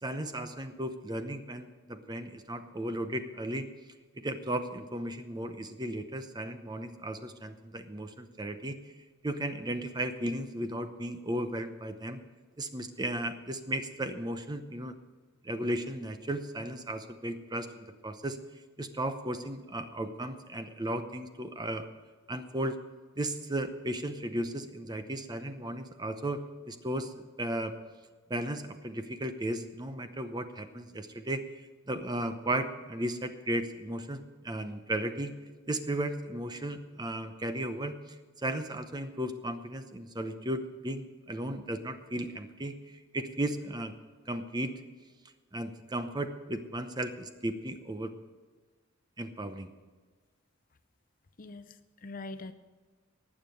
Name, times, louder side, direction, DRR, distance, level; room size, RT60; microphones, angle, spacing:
voice 1, 0.0-3.7 4.2-8.8 9.2-12.2 12.6-15.0 15.4-18.4 18.8-21.9 22.3-22.8 23.2-26.4 26.7-27.1 27.4-27.8 28.3-31.4 31.9-35.3 35.7-37.9 38.4-43.9 44.3-44.7 45.5-48.1 49.2-49.7, right 1 dB, 20° right, 9 dB, 0.8 m, -35 dB
voice 2, 51.4-52.5, left 2 dB, 40° left, 11 dB, 0.7 m, -43 dB
19.0 x 7.4 x 6.4 m, 1.4 s
head